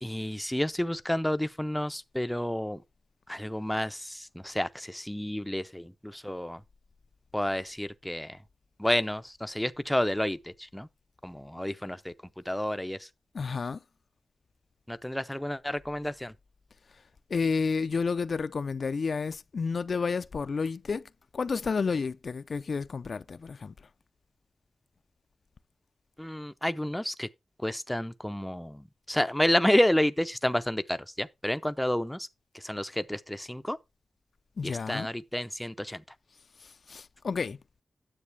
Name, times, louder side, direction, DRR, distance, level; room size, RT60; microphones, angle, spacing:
voice 1, 0.0-2.8 3.3-6.6 7.3-8.4 8.8-10.9 11.2-12.1 12.5-13.1 14.9-16.3 26.2-27.3 27.6-32.3 32.5-33.8 34.6-36.0, left 1 dB, 5° left, 0.5 m, -30 dB
voice 2, 13.3-13.8 17.3-21.0 21.3-23.7 34.6-35.1 36.6-37.6, left 5 dB, 65° left, 0.4 m, -31 dB
9.7 x 7.5 x 3.3 m
wide cardioid pair, 105°, 0 cm